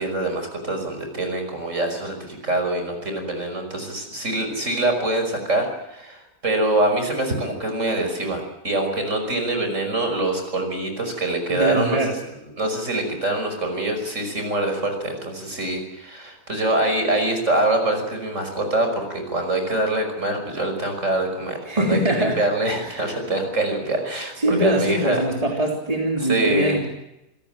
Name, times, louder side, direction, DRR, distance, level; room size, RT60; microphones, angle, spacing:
voice 1, 0.0-12.2 12.6-25.2 26.2-26.8, right 2 dB, 50° right, 5 dB, 6.0 m, -24 dB
voice 2, 11.5-12.2 21.7-22.4 22.9-23.1 24.4-26.9, right 1 dB, 25° right, 1 dB, 3.6 m, -22 dB
27.0 x 17.0 x 9.0 m, 0.88 s
omnidirectional pair, 1.6 m